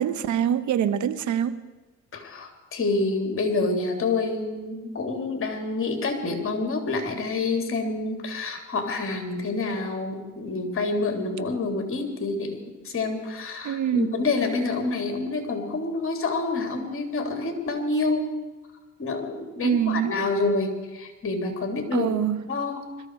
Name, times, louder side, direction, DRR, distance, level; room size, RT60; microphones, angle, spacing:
voice 1, 0.0-1.6 13.6-14.1 19.6-20.2 21.9-22.4, right 9 dB, 75° right, 1.1 m, -25 dB
voice 2, 2.1-18.3 19.0-22.2 22.5-22.8, left 3 dB, 45° left, 3.3 m, -27 dB
21.5 x 14.0 x 4.8 m
cardioid pair, 90°, 30 cm